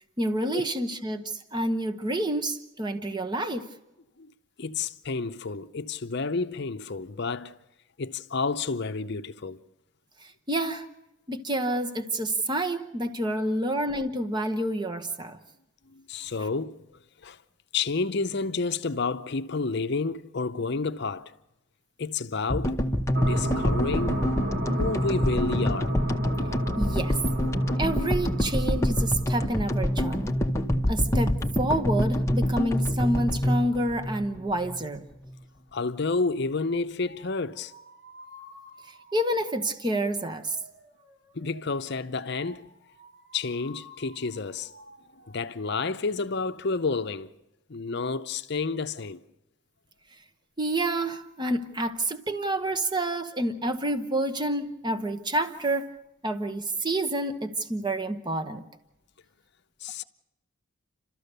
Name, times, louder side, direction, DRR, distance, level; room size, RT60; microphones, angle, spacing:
voice 1, 0.2-3.7 10.2-10.9 11.3-15.4 26.8-27.2 27.8-30.4 30.9-35.1 39.1-40.6 50.6-55.9 56.2-58.6, right 1 dB, 20° right, 1.0 m, -28 dB
voice 2, 4.6-7.6 8.0-9.6 15.9-17.4 17.7-21.3 22.0-22.8 23.1-24.2 24.8-25.9 35.7-37.7 41.3-42.7 43.3-44.7 45.3-47.3 47.7-49.2 59.8-60.0, left 4 dB, 50° left, 0.7 m, -30 dB
sound 1, 22.5-34.8, equal, 15° left, 0.9 m, -26 dB
sound 2, 23.1-30.3, right 1 dB, 45° right, 1.2 m, -34 dB
sound 3, 37.1-45.9, equal, 80° right, 4.7 m, -52 dB
30.0 x 13.5 x 6.7 m
head